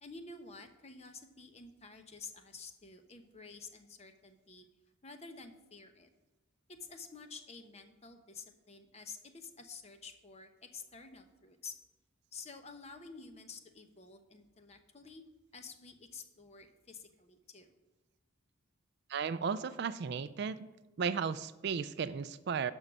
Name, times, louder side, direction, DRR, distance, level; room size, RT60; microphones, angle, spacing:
voice 1, 0.0-4.7 5.0-6.1 6.7-11.7 12.3-15.2 15.5-17.7, left 4 dB, 30° left, 7 dB, 0.8 m, -50 dB
voice 2, 19.1-20.7 21.0-22.7, right 6 dB, 55° right, 14 dB, 0.4 m, -35 dB
11.5 x 5.5 x 6.1 m, 1.1 s
head